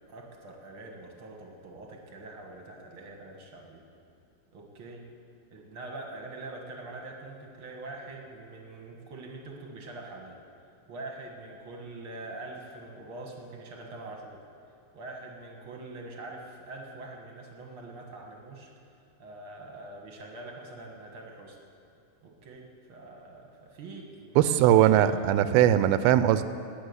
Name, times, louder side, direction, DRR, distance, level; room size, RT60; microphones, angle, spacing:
voice 1, 0.1-3.8 4.5-5.1 5.5-10.4 10.9-14.4 14.9-18.7 19.2-21.6 22.2-25.2, right 2 dB, 50° right, 1 dB, 1.6 m, -44 dB
voice 2, 24.4-26.4, right 11 dB, 85° right, 12 dB, 2.5 m, -20 dB
18.0 x 6.8 x 9.6 m, 2.6 s
omnidirectional pair, 4.3 m